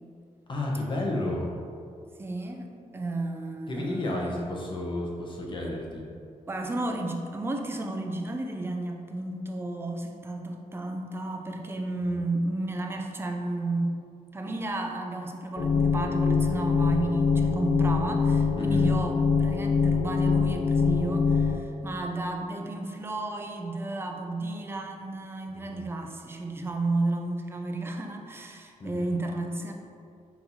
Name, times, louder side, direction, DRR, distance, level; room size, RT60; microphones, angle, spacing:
voice 1, 0.5-1.5 3.7-6.0 12.1-12.2 18.6-18.8 25.6-25.8 28.8-29.1, left 1 dB, 40° left, -2 dB, 0.8 m, -32 dB
voice 2, 2.2-2.7 2.9-4.4 6.5-13.9 14.3-29.7, right 2 dB, 20° right, 3 dB, 0.4 m, -32 dB
sound 1, 15.6-21.6, left 5 dB, 70° left, 0.4 m, -24 dB
4.2 x 3.9 x 2.7 m, 2.4 s
wide cardioid pair, 130°, 13 cm